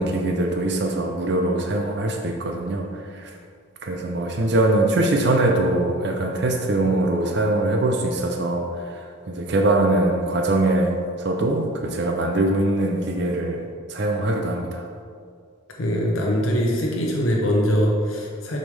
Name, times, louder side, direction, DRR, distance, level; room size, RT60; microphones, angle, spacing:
voice 1, 0.0-3.3 3.8-13.6 13.9-14.9, right 2 dB, 55° right, 3 dB, 0.5 m, -22 dB
voice 2, 15.8-18.6, equal, 75° left, -2 dB, 0.9 m, -22 dB
6.5 x 5.3 x 3.3 m, 2.2 s
head